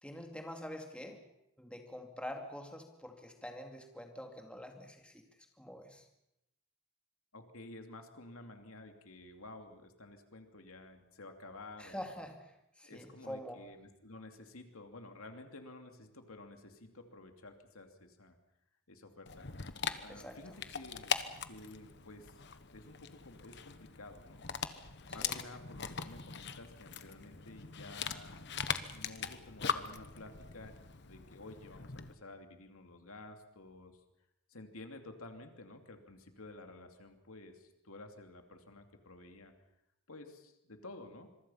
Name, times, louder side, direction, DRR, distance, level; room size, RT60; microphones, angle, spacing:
voice 1, 0.0-1.2 1.6-5.2 5.6-6.1 11.8-13.6 20.1-20.6 25.1-25.5, left 1 dB, 5° left, 3 dB, 2.4 m, -46 dB
voice 2, 7.3-12.1 12.8-18.4 18.9-19.5 19.9-22.3 22.7-24.4 25.1-28.4 28.9-30.7 31.0-34.0 34.5-39.5 40.1-41.3, left 2 dB, 80° left, 5 dB, 2.8 m, -52 dB
Dog, 19.3-32.1, left 6 dB, 55° left, 1.2 m, -41 dB
26.0 x 23.5 x 5.7 m, 0.85 s
head